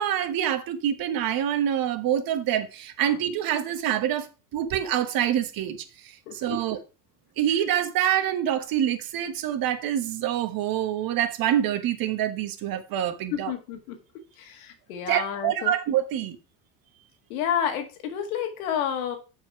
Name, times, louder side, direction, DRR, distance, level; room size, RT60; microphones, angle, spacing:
voice 1, 0.0-6.8 7.4-13.5 15.1-16.4, right 10 dB, 55° right, 1.3 m, -26 dB
voice 2, 6.3-6.6 13.3-14.0 14.4-15.7 17.3-19.2, left 9 dB, 85° left, 2.0 m, -30 dB
7.2 x 4.8 x 5.7 m
supercardioid pair, 90°, 42 cm